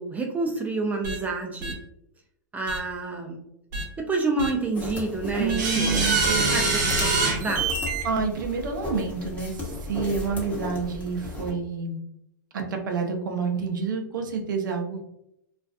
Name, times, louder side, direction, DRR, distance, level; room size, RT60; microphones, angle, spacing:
voice 1, 0.0-1.8 2.5-3.4 4.0-7.7, right 3 dB, 15° right, 2 dB, 0.4 m, -29 dB
sound 1, 1.0-1.2 1.6-1.7 2.7-2.8 3.7-3.8 4.4-4.5 5.5-8.0, right 3 dB, 65° right, 0.9 m, -25 dB
sound 2, 4.7-11.5, left 1 dB, 15° left, 0.8 m, -35 dB
voice 2, 5.4-6.6 8.0-12.0 12.5-15.0, right 5 dB, 80° right, 4 dB, 0.5 m, -28 dB
2.4 x 2.3 x 2.2 m, 0.79 s
hypercardioid pair, 125°, 10 cm